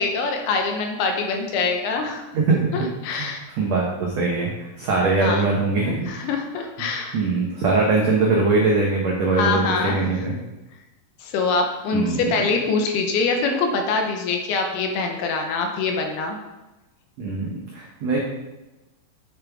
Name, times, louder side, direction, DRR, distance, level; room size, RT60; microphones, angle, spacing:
voice 1, 0.0-2.2 2.7-3.4 5.2-5.5 5.8-7.2 9.4-10.0 11.2-16.4, left 4 dB, 80° left, 3 dB, 2.9 m, -24 dB
voice 2, 2.3-2.8 3.0-6.1 7.1-10.4 11.9-12.2 17.2-18.2, right 3 dB, 80° right, -2 dB, 1.5 m, -22 dB
8.6 x 7.0 x 3.5 m, 1.0 s
omnidirectional pair, 4.7 m